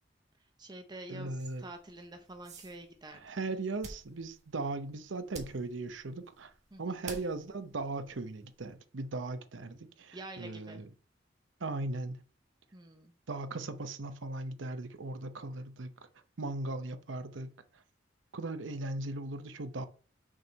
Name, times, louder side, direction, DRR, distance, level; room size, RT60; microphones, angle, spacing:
voice 1, 0.4-3.2 3.5-3.6 6.7-7.0 10.1-10.8 12.7-13.1, right 1 dB, 25° right, 0.7 m, -47 dB
voice 2, 1.1-1.6 3.2-6.5 6.8-10.8 11.6-12.2 13.3-15.9 16.4-17.5 18.3-19.9, right 2 dB, 80° right, 0.7 m, -38 dB
sound 1, 1.4-8.7, right 3 dB, 40° right, 1.4 m, -52 dB
6.2 x 4.5 x 5.2 m
head